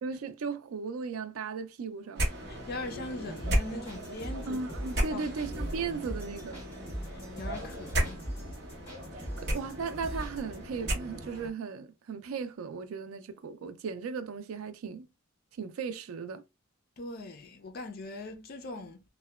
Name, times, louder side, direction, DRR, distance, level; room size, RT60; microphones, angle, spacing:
voice 1, 0.0-2.3 4.5-6.6 9.1-15.1 15.6-16.4, right 5 dB, 90° right, 0.4 m, -36 dB
sound 1, 2.1-11.5, equal, 55° right, 0.8 m, -35 dB
voice 2, 2.5-4.6 5.1-5.3 7.0-8.2 17.0-19.0, left 2 dB, 45° left, 0.4 m, -41 dB
sound 2, 3.2-10.6, right 1 dB, 10° left, 1.3 m, -42 dB
2.8 x 2.1 x 2.3 m
head